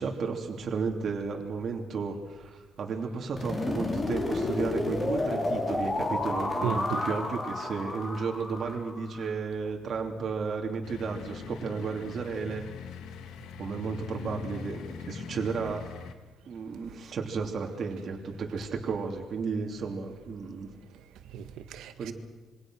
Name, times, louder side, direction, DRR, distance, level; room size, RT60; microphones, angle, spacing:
voice 1, 0.0-12.6 13.6-15.9 16.4-20.7 22.0-22.1, right 5 dB, 45° right, 2.9 m, -33 dB
sound 1, 3.4-9.3, left 2 dB, 25° left, 4.0 m, -31 dB
voice 2, 6.6-7.0 20.9-22.1, right 9 dB, 80° right, 1.7 m, -36 dB
sound 2, 10.8-16.1, left 7 dB, 90° left, 2.1 m, -42 dB
27.0 x 23.5 x 6.3 m
cardioid pair, 150°, 0 cm